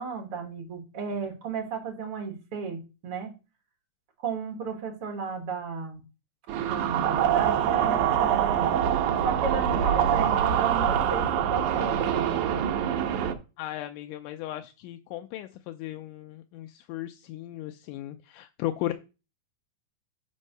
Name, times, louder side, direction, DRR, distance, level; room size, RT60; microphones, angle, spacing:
voice 1, 0.0-3.3 4.2-6.0 6.6-8.7 9.2-12.4, right 5 dB, 50° right, 2 dB, 2.1 m, -34 dB
sound 1, 6.5-13.3, right 9 dB, 70° right, 2.0 m, -25 dB
voice 2, 13.6-18.9, left 14 dB, 80° left, 7 dB, 1.9 m, -36 dB
5.5 x 5.2 x 6.5 m, 0.31 s
omnidirectional pair, 4.1 m